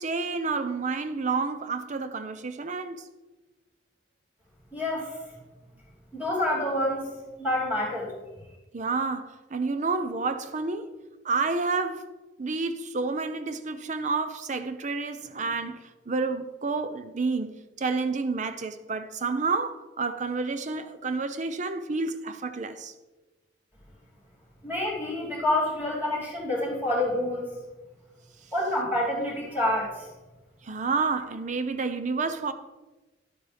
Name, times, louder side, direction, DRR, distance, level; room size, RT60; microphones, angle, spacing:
voice 1, 0.0-3.0 8.7-10.9 11.2-12.1 12.4-22.9 30.6-32.5, right 4 dB, 45° right, 0.6 m, -29 dB
voice 2, 4.7-5.1 6.1-7.1 7.4-8.1 24.6-27.5 28.5-30.1, left 1 dB, 10° right, 3.0 m, -27 dB
11.0 x 8.3 x 3.4 m
head